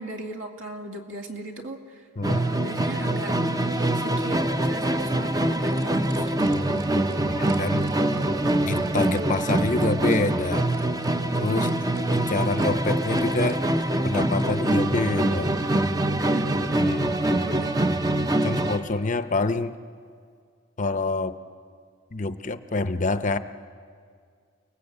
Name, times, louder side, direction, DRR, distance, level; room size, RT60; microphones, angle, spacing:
voice 1, 0.0-2.1 2.3-6.6 11.5-12.0 16.2-16.6 17.5-18.0, right 2 dB, 70° right, 3 dB, 2.3 m, -38 dB
Musical instrument, 2.2-18.9, right 1 dB, 15° right, 0.7 m, -24 dB
sound 1, 5.4-14.8 16.0-16.1, right 3 dB, 55° right, 2.7 m, -49 dB
voice 2, 7.3-7.9 8.7-10.7 11.4-11.7 12.1-13.6 14.0-15.5 16.8-17.4 18.4-19.7 20.8-21.3 22.1-23.4, left 3 dB, 35° left, 10 dB, 0.7 m, -27 dB
29.0 x 19.5 x 8.0 m, 2.1 s
head